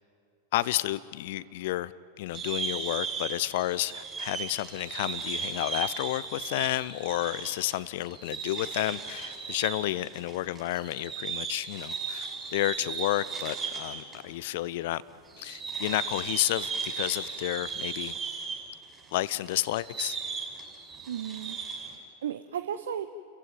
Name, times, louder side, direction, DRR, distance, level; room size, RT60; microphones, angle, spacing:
voice 1, 0.5-1.9 2.2-15.0 15.4-18.2 19.1-20.2, left 16 dB, 50° left, 19 dB, 0.6 m, -31 dB
sound 1, 2.3-14.2 14.5-14.6 15.3-22.0, right 5 dB, 15° right, 6.5 m, -36 dB
voice 2, 21.1-23.1, right 9 dB, 60° right, 11 dB, 0.7 m, -35 dB
30.0 x 15.5 x 9.1 m, 2.7 s
figure-of-eight pair, 90°, 0 cm